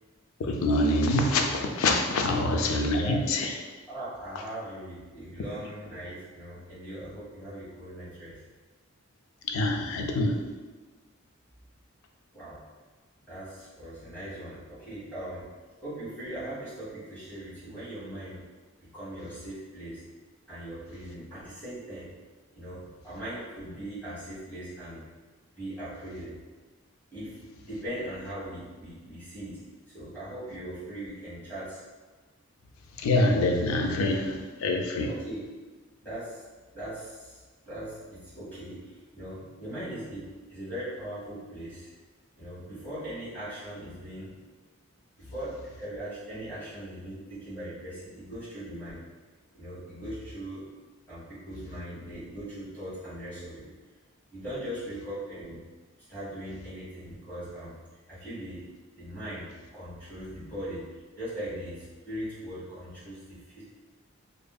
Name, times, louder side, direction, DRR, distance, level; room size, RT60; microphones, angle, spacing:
voice 1, 0.4-3.6 9.4-10.5 33.0-35.1, left 2 dB, 75° left, 3 dB, 0.3 m, -25 dB
voice 2, 2.8-3.3 3.9-8.4 12.3-12.6 13.3-15.5 15.8-18.4 18.8-20.0 20.5-22.1 22.5-25.1 25.6-26.4 27.1-27.4 27.7-29.6 29.9-31.8 35.1-35.5 36.0-36.4 36.7-41.9 42.4-44.4 45.2-49.0 49.5-50.7 51.1-53.7 54.3-55.6 56.1-57.8 58.1-58.6 59.0-60.9 61.2-63.6, right 1 dB, 10° left, -14 dB, 1.3 m, -40 dB
2.6 x 2.5 x 2.2 m, 1.3 s
head